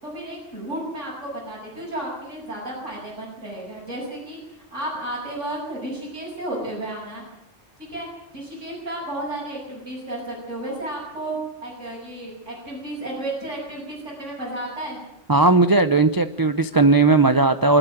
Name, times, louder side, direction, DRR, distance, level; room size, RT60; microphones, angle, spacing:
voice 1, 0.0-7.2 7.9-8.1 8.3-15.0, right 1 dB, 85° right, -6 dB, 7.2 m, -32 dB
voice 2, 15.3-17.8, right 3 dB, 20° right, 10 dB, 0.6 m, -17 dB
24.5 x 12.5 x 9.1 m, 0.82 s
omnidirectional pair, 1.2 m